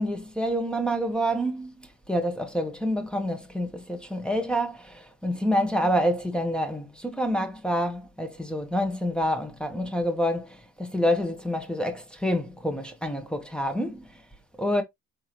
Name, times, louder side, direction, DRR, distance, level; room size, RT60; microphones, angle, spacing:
voice 1, 0.0-14.1 14.6-14.8, equal, 5° left, 1.2 m, -27 dB
4.5 x 3.5 x 2.9 m
cardioid pair, 90°, 30 cm